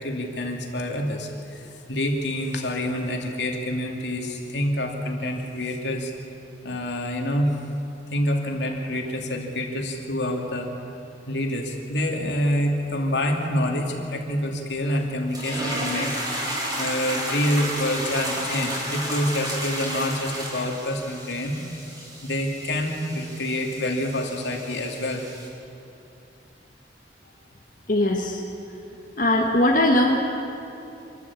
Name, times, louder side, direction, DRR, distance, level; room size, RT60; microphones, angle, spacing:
voice 1, 0.0-6.1 6.6-7.6 8.1-10.7 11.3-16.2 16.8-21.6 22.2-25.3, left 1 dB, 75° left, 2 dB, 2.6 m, -27 dB
sound 1, 15.3-25.5, right 1 dB, 20° right, 4.5 m, -32 dB
voice 2, 27.9-28.4 29.2-30.2, left 1 dB, 50° left, -1 dB, 1.5 m, -20 dB
26.0 x 12.5 x 8.6 m, 2.8 s
head